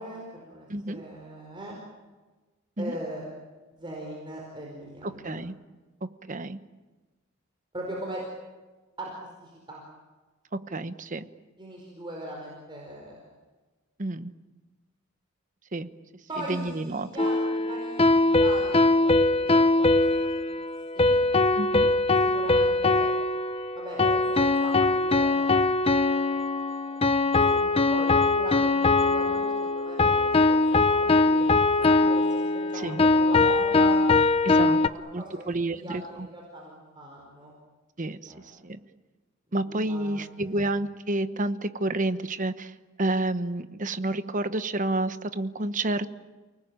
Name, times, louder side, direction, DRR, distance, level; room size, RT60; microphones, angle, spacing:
voice 1, 0.0-1.7 2.8-3.2 3.7-5.4 7.7-8.2 9.0-9.1 9.4-9.8 11.6-13.3 16.3-20.7 20.9-21.1 22.2-23.1 23.7-25.6 26.1-26.4 26.9-27.0 27.3-34.0 34.5-35.5 35.7-37.5 38.3-38.6 39.5-40.6, right 1 dB, 25° right, -2 dB, 4.8 m, -40 dB
voice 2, 0.7-1.0 2.8-3.0 5.2-5.6 6.3-6.6 10.7-11.3 14.0-14.3 15.7-15.9 16.4-17.1 21.5-21.9 32.7-33.0 34.4-34.8 35.1-36.3 38.0-38.3 38.6-38.8 39.5-42.7 43.0-46.1, right 2 dB, 40° right, 11 dB, 1.1 m, -29 dB
sound 1, 17.2-34.9, left 3 dB, 25° left, 0.8 m, -22 dB
29.5 x 19.5 x 9.0 m, 1.2 s
head